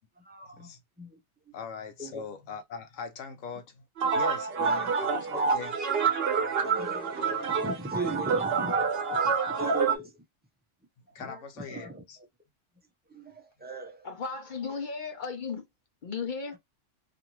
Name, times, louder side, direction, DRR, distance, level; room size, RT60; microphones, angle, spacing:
voice 1, 0.2-0.7 1.0-1.2 2.0-2.2 4.0-4.1 4.5-5.5 6.2-10.1 11.2-11.4 11.7-12.0 13.1-14.1 16.5-16.6, right 1 dB, 15° right, 0.4 m, -39 dB
voice 2, 1.5-3.8 4.1-4.5 5.0-5.8 11.1-12.2, left 5 dB, 80° left, 1.0 m, -41 dB
sound 1, 4.0-10.0, right 5 dB, 55° right, 0.9 m, -27 dB
voice 3, 14.0-15.6 16.0-16.6, left 5 dB, 55° left, 0.6 m, -35 dB
2.6 x 2.5 x 2.9 m
omnidirectional pair, 1.3 m